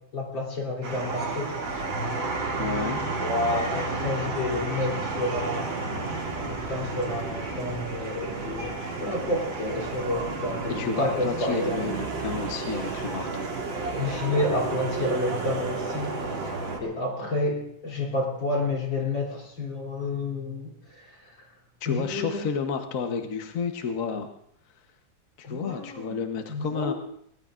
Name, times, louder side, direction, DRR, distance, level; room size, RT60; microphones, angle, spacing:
voice 1, 0.1-1.5 3.2-6.1 6.4-11.8 14.0-16.5 16.8-21.5 21.9-22.5 25.4-26.2 26.5-26.9, left 2 dB, 75° left, -1 dB, 4.0 m, -30 dB
sound 1, 0.8-16.8, right 3 dB, 75° right, 3.2 m, -31 dB
voice 2, 2.6-3.0 10.7-13.5 21.8-24.3 25.4-26.9, left 6 dB, 50° left, 5 dB, 1.2 m, -31 dB
23.0 x 18.5 x 2.5 m, 0.70 s
omnidirectional pair, 2.1 m